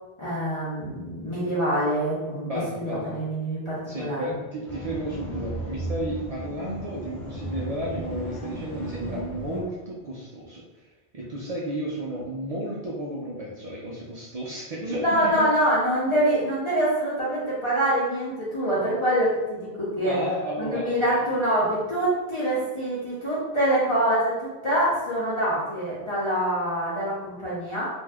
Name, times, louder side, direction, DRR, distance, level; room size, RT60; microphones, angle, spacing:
voice 1, 0.2-4.3 15.0-20.1 20.6-27.9, right 1 dB, 30° left, -9 dB, 0.7 m, -25 dB
voice 2, 2.4-3.2 3.9-10.6 11.1-15.3 20.0-21.3, right 1 dB, 55° right, -4 dB, 0.4 m, -32 dB
sound 1, 4.6-9.6, right 1 dB, ahead, 0.8 m, -35 dB
2.6 x 2.2 x 3.4 m, 1.1 s
omnidirectional pair, 1.1 m